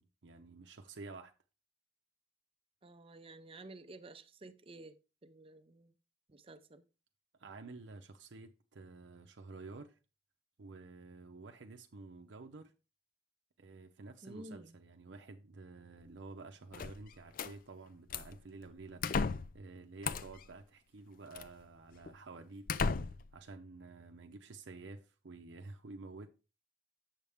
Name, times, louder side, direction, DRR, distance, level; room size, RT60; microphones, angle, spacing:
voice 1, 0.0-1.3 7.4-10.0 10.6-12.7 13.6-22.6 23.3-26.3, right 3 dB, 80° right, 0.6 m, -51 dB
voice 2, 2.8-5.9 6.3-6.8 14.2-14.8, right 2 dB, 30° right, 0.6 m, -52 dB
sound 1, 16.7-17.5 18.1-18.4 19.0-19.6 20.0-20.4 21.3-21.5 22.1-22.2 22.7-23.3, left 4 dB, 50° left, 0.4 m, -35 dB
7.4 x 7.0 x 3.5 m
head